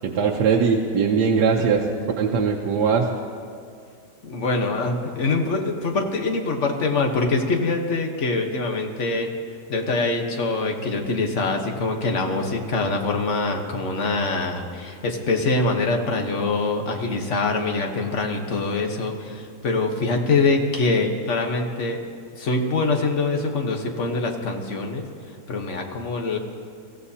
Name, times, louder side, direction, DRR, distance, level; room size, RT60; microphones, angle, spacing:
voice 1, 0.0-1.9 2.2-3.1, right 5 dB, 80° right, -1 dB, 1.5 m, -20 dB
voice 2, 4.2-9.3 9.7-22.0 22.4-25.0 25.5-26.4, left 3 dB, 45° left, 3 dB, 1.5 m, -24 dB
23.5 x 14.5 x 2.8 m, 2.4 s
omnidirectional pair, 1.8 m